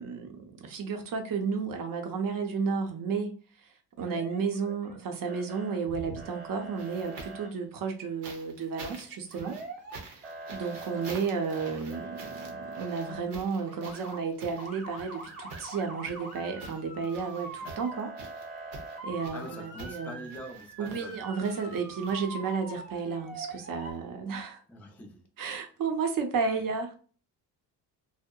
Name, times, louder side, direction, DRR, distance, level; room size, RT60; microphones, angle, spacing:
voice 1, 0.0-3.7 4.0-9.6 10.0-18.1 19.0-20.3 20.8-24.6 25.4-26.9, right 5 dB, 55° right, 0.6 m, -32 dB
Motor vehicle (road) / Siren, 4.0-5.0 5.3-5.8 6.2-7.5 9.3-10.0 10.2-13.2 13.7-14.2 14.6-23.9, right 2 dB, 20° right, 0.9 m, -43 dB
sound 1, 5.8-7.5 8.2-22.7 23.9-24.0, right 3 dB, 85° right, 0.7 m, -48 dB
voice 2, 19.3-21.2 24.7-25.2, equal, 5° left, 0.3 m, -44 dB
2.7 x 2.0 x 2.2 m
cardioid pair, 105°, 41 cm